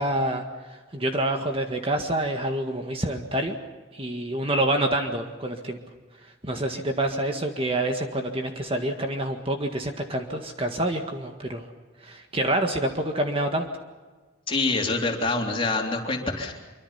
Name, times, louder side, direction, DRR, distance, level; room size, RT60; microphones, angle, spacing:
voice 1, 0.0-3.5 3.9-5.8 6.4-11.7 12.0-13.7, right 1 dB, 30° right, 4 dB, 1.8 m, -27 dB
voice 2, 14.5-16.6, left 3 dB, 25° left, 1 dB, 3.5 m, -26 dB
26.0 x 24.5 x 5.8 m, 1.3 s
head